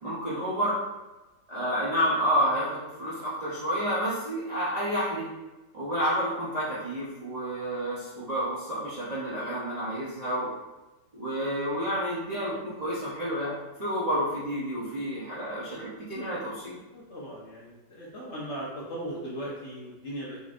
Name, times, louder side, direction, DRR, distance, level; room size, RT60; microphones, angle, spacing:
voice 1, 0.0-0.8 1.5-5.3 5.7-10.5 11.1-16.8, equal, 85° right, -10 dB, 0.3 m, -30 dB
voice 2, 16.9-20.4, right 1 dB, 55° left, -6 dB, 0.8 m, -38 dB
4.0 x 3.1 x 2.5 m, 1.1 s
omnidirectional pair, 2.0 m